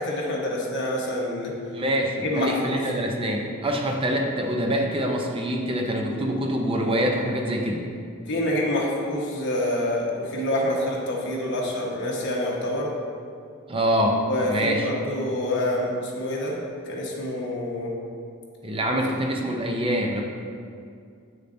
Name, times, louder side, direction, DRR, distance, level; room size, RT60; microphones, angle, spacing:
voice 1, 0.0-1.5 2.2-2.8 8.3-12.9 14.3-16.6 16.8-17.9, left 1 dB, 55° left, -2 dB, 1.2 m, -27 dB
voice 2, 1.7-7.8 13.7-14.9 18.6-20.2, equal, 25° right, 1 dB, 0.5 m, -25 dB
8.7 x 6.7 x 2.6 m, 2.3 s
head